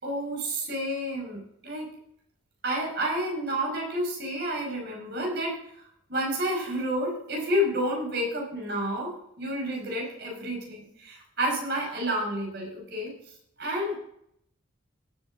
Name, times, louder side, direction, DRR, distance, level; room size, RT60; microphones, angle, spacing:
voice 1, 0.0-1.9 2.6-5.6 6.1-9.1 9.4-13.1 13.6-13.9, equal, 55° right, -1 dB, 5.1 m, -30 dB
17.5 x 8.0 x 3.7 m, 0.72 s
head